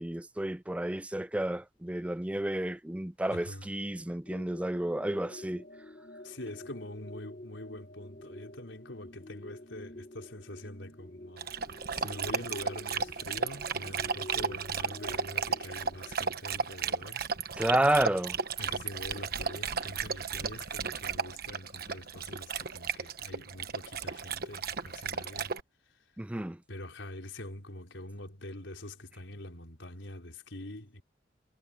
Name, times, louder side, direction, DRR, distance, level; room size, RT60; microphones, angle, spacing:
voice 1, 0.0-5.7 17.6-18.4 26.2-26.6, right 1 dB, 5° right, 0.4 m, -31 dB
voice 2, 3.3-3.7 6.2-11.6 11.9-17.2 18.6-25.5 26.7-31.0, left 1 dB, 90° left, 4.6 m, -44 dB
sound 1, 4.3-16.1, left 1 dB, 40° left, 1.2 m, -48 dB
Dog, 11.4-25.6, right 6 dB, 55° right, 1.2 m, -34 dB
head